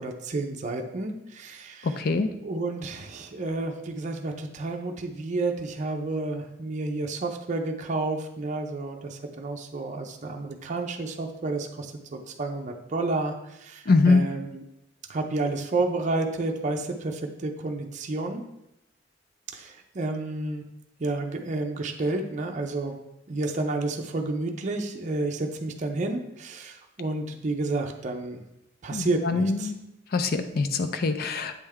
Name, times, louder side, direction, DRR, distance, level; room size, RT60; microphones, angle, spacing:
voice 1, 0.0-2.0 2.4-14.6 15.1-18.4 19.5-20.6 21.0-23.0 23.3-28.4 28.8-29.7, right 2 dB, 40° right, 3 dB, 0.5 m, -30 dB
voice 2, 1.8-2.3 13.9-14.2 28.9-29.8 30.1-31.5, left 3 dB, 50° left, 9 dB, 0.5 m, -23 dB
8.2 x 3.3 x 3.5 m, 0.86 s
head